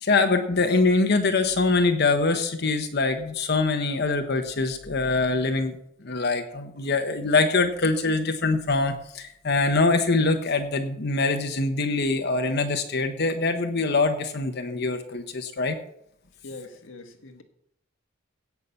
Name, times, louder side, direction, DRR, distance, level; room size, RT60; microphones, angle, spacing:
voice 1, 0.0-5.8 6.0-15.8, left 3 dB, 60° left, 1.1 m, -24 dB
voice 2, 16.4-17.4, left 2 dB, 85° left, 1.5 m, -42 dB
16.5 x 5.9 x 6.9 m
head